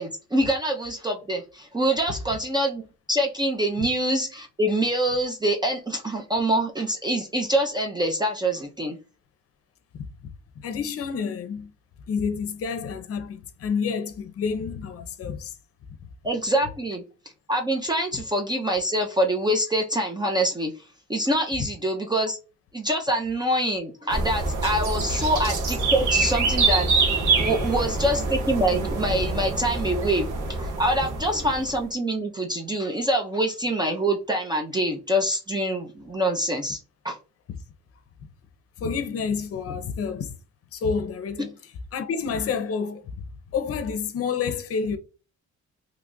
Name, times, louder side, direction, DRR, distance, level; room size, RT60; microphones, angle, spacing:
voice 1, 0.0-2.8 3.1-9.0 16.2-17.0 17.5-20.7 21.1-22.4 22.7-26.9 27.4-30.3 30.6-36.8 37.0-37.2, right 1 dB, 15° right, 0.5 m, -25 dB
voice 2, 10.6-11.7 12.1-15.6 25.2-25.3 38.8-40.3 40.7-41.6 41.9-43.2 43.5-45.0, left 6 dB, 50° left, 0.6 m, -29 dB
sound 1, 24.1-31.7, right 3 dB, 90° right, 1.3 m, -25 dB
3.1 x 2.4 x 3.7 m
cardioid pair, 140°, 29 cm